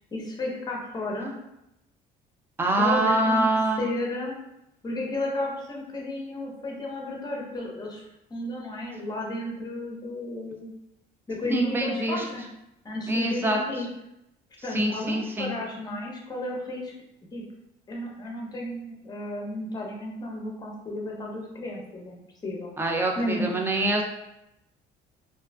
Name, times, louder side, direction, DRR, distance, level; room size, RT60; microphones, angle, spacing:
voice 1, 0.1-1.3 2.8-3.5 3.8-4.4 4.8-8.0 8.3-10.7 11.3-12.4 12.8-13.9 14.6-16.9 17.3-17.4 17.9-22.7 23.2-23.5, left 1 dB, 25° left, -1 dB, 0.6 m, -33 dB
voice 2, 2.6-3.9 11.5-12.2 13.1-13.6 14.7-15.5 22.8-24.0, right 1 dB, 15° right, 1 dB, 0.4 m, -24 dB
2.5 x 2.2 x 2.2 m, 0.85 s
cardioid pair, 110°, 17 cm